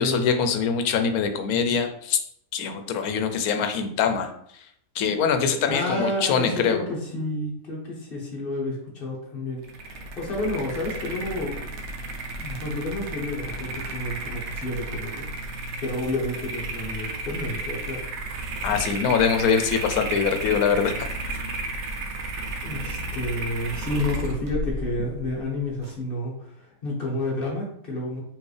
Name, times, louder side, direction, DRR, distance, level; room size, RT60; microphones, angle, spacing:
voice 1, 0.0-2.2 2.5-4.7 4.9-6.9 18.6-21.4, left 6 dB, 85° left, 7 dB, 1.1 m, -24 dB
voice 2, 5.7-11.6 12.4-15.3 15.8-18.0 22.6-28.2, left 1 dB, 40° left, -2 dB, 1.3 m, -30 dB
sound 1, 9.6-26.0, right 2 dB, 80° right, 1.0 m, -33 dB
4.5 x 2.8 x 3.2 m, 0.70 s
omnidirectional pair, 1.5 m